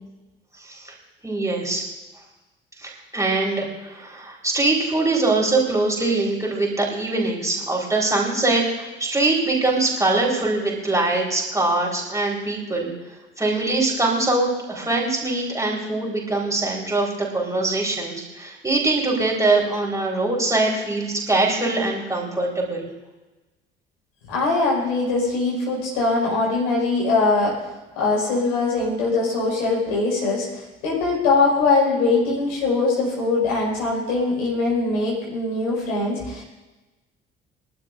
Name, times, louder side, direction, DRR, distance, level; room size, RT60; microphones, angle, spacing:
voice 1, 0.6-0.9 1.2-1.8 2.8-12.9 13.4-22.9, right 2 dB, 10° right, -3 dB, 4.6 m, -23 dB
voice 2, 24.3-27.5 28.0-36.4, left 3 dB, 65° left, -4 dB, 5.8 m, -22 dB
23.5 x 12.0 x 2.7 m, 1.1 s
figure-of-eight pair, 50°, 29 cm